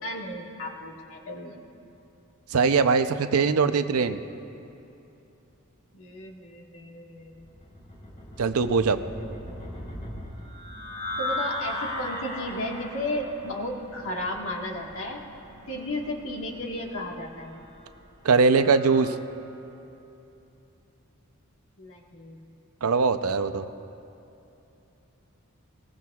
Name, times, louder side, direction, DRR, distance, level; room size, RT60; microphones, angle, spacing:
voice 1, 0.0-1.6 5.9-7.4 11.2-15.2 15.7-17.6 21.8-22.4, left 1 dB, 65° left, 0 dB, 1.6 m, -34 dB
voice 2, 2.5-4.2 8.4-9.0 18.2-19.1 22.8-23.7, right 4 dB, 90° right, 10 dB, 0.6 m, -21 dB
sound 1, 7.3-19.2, left 1 dB, 40° left, 2.1 m, -38 dB
21.5 x 18.0 x 2.4 m, 2.9 s
head